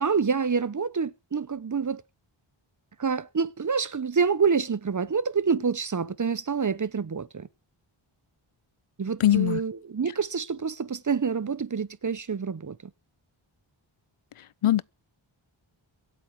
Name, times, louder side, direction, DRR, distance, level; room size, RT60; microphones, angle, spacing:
voice 1, 0.0-2.0 3.0-7.5 9.0-12.8, right 5 dB, 35° right, 0.8 m, -27 dB
voice 2, 9.2-9.6 14.6-14.8, left 12 dB, 80° left, 0.7 m, -20 dB
23.5 x 8.6 x 4.6 m
wide cardioid pair, 60°, 50 cm